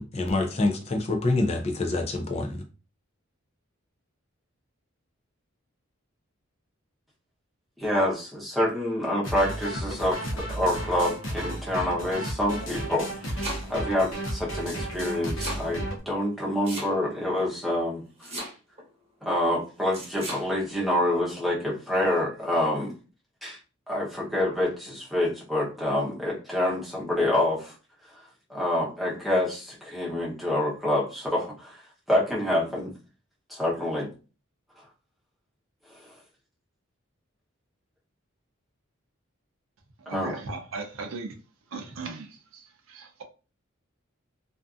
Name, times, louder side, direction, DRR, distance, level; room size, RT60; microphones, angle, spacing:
voice 1, 0.0-2.6, left 2 dB, 30° left, 0.4 m, -26 dB
voice 2, 7.8-13.4 13.7-18.0 19.2-22.9 23.4-23.6 23.9-27.7 28.5-31.8 32.1-32.9 33.5-34.1 40.1-40.4, left 1 dB, ahead, 0.7 m, -27 dB
sound 1, 9.2-16.0, right 1 dB, 65° left, 0.7 m, -33 dB
Domestic sounds home sounds, 12.9-13.9 14.9-15.7 16.6-17.3 18.2-18.8 19.9-20.5, right 1 dB, 30° right, 0.9 m, -36 dB
voice 3, 40.0-41.4 41.7-43.2, right 3 dB, 75° right, 0.5 m, -37 dB
2.5 x 2.5 x 2.4 m
head